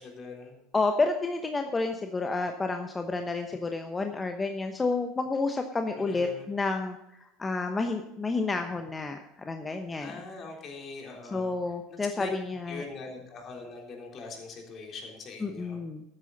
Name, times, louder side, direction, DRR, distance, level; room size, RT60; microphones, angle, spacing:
voice 1, 0.0-0.6 5.9-6.5 10.0-11.5 11.9-12.3 12.7-15.8, left 3 dB, 40° left, 1 dB, 3.5 m, -42 dB
voice 2, 0.7-7.0 7.4-10.1 11.3-12.8 15.4-16.0, left 3 dB, 20° left, 6 dB, 1.0 m, -30 dB
13.5 x 10.0 x 4.1 m, 0.90 s
figure-of-eight pair, 75°, 0 cm